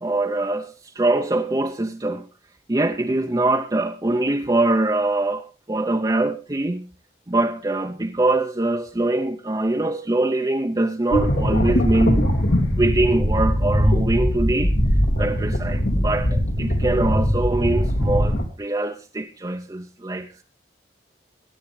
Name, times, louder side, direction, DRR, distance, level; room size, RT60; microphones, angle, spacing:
voice 1, 0.0-2.3 2.7-6.9 7.3-12.3 12.8-14.8 15.2-20.4, right 2 dB, 20° right, 0.6 m, -23 dB
sound 1, 11.1-18.4, equal, 80° left, 2.5 m, -21 dB
21.0 x 10.0 x 3.2 m
head